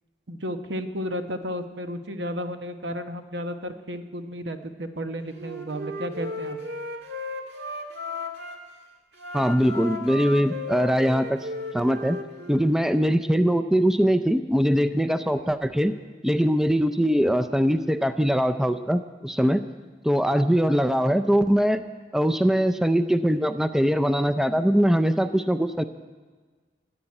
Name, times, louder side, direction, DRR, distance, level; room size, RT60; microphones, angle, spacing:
voice 1, 0.3-6.6, equal, 85° right, 7 dB, 1.0 m, -33 dB
Wind instrument woodwind instrument, 5.3-8.6 9.1-12.7, left 2 dB, 70° right, 1.8 m, -35 dB
voice 2, 9.3-11.5 11.7-12.2 12.5-15.9 16.2-19.6 20.0-21.8 22.1-25.8, equal, 5° right, 9 dB, 0.4 m, -22 dB
14.0 x 8.9 x 9.6 m, 1.4 s
head